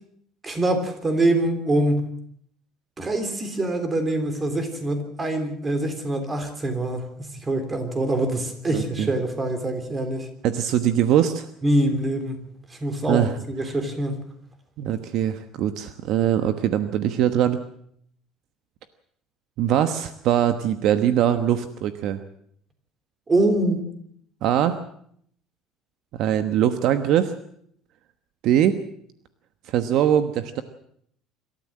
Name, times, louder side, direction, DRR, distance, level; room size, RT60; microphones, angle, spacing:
voice 1, 0.4-2.0 3.0-10.3 11.6-12.4 12.7-14.2 23.3-23.8, right 1 dB, 15° right, 7 dB, 3.4 m, -24 dB
voice 2, 8.7-9.1 10.4-11.5 13.1-13.3 14.8-17.6 19.6-22.2 24.4-24.8 26.2-27.3 28.4-28.8 29.7-30.6, right 10 dB, 55° right, 9 dB, 1.1 m, -22 dB
25.5 x 13.5 x 7.7 m, 0.67 s
cardioid pair, 150°, 0 cm